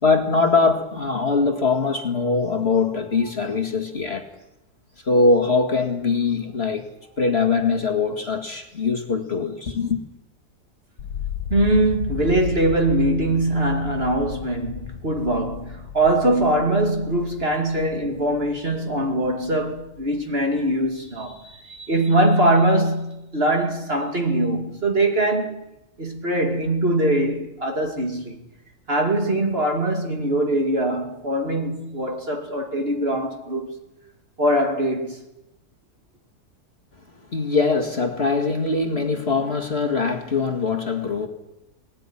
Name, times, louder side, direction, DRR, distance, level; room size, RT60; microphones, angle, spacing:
voice 1, 0.0-4.3 5.0-6.9 7.2-10.0 37.3-41.3, left 4 dB, 40° left, 2.2 m, -22 dB
sound 1, 11.0-21.0 21.3-22.0, left 9 dB, 80° left, 1.6 m, -35 dB
voice 2, 11.5-25.7 26.0-28.4 28.9-33.7 34.4-35.2, right 1 dB, 35° right, 2.7 m, -22 dB
20.0 x 18.0 x 10.0 m
omnidirectional pair, 1.7 m